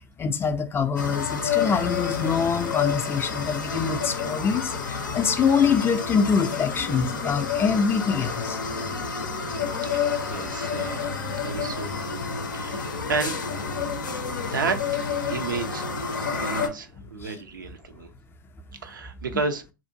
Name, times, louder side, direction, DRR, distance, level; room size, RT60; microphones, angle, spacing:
voice 1, 0.2-8.6 17.2-17.4, left 6 dB, 20° left, 0.4 m, -24 dB
sound 1, 1.0-16.7, left 5 dB, 90° left, 0.5 m, -29 dB
voice 2, 9.9-11.1 11.4-12.2 12.5-13.4 14.5-18.1 18.8-19.6, right 4 dB, 90° right, 0.5 m, -32 dB
2.6 x 2.1 x 2.6 m
hypercardioid pair, 95°, 10 cm